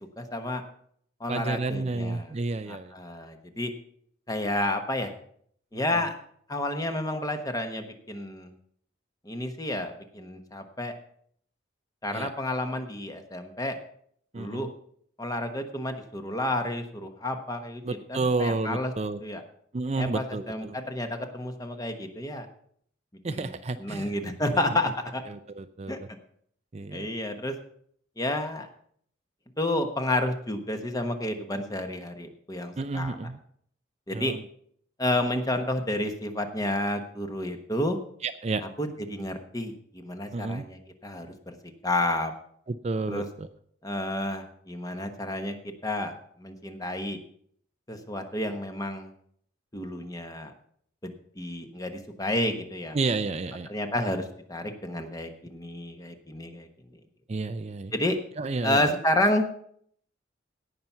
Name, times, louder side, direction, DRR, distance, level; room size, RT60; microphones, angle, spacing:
voice 1, 0.2-0.6 1.2-2.3 2.7-3.7 4.3-5.1 5.7-6.1 6.5-8.5 9.2-10.9 12.0-13.8 14.3-14.7 15.2-18.9 19.2-19.4 20.0-22.5 23.3-23.5 23.8-25.2 25.9-26.2 26.9-27.6 28.2-28.7 29.6-33.2 34.1-34.3 35.0-38.0 38.6-41.5 41.8-42.3 43.1-43.3 43.8-46.1 46.4-47.2 47.9-49.1 49.7-50.5 51.0-53.0 53.7-56.7 57.9-58.2 58.6-59.5, left 1 dB, 20° left, 6 dB, 1.1 m, -30 dB
voice 2, 1.3-2.9 5.7-5.8 12.1-12.3 14.3-14.7 17.8-19.2 19.7-20.8 23.2-24.1 25.3-26.0 26.7-27.1 32.8-33.4 34.1-34.4 38.2-38.6 40.3-40.6 42.7-43.5 52.9-53.7 57.3-57.9 58.4-58.9, right 3 dB, 35° right, 10 dB, 0.5 m, -31 dB
17.0 x 6.0 x 5.6 m, 0.64 s
head